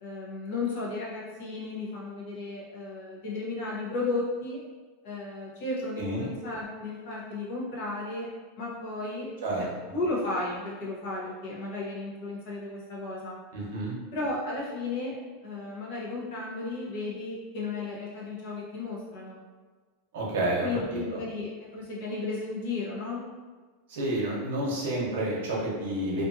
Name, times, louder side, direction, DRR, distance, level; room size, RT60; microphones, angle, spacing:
voice 1, 0.0-4.6 5.0-8.3 8.6-9.3 9.6-13.4 14.1-19.4 20.6-23.3, left 3 dB, 50° left, -5 dB, 0.7 m, -34 dB
voice 2, 6.0-6.3 9.4-9.7 13.5-13.9 20.1-21.2 23.9-26.2, right 1 dB, 75° right, -3 dB, 0.8 m, -30 dB
2.5 x 2.4 x 2.5 m, 1.4 s
supercardioid pair, 170°, 0 cm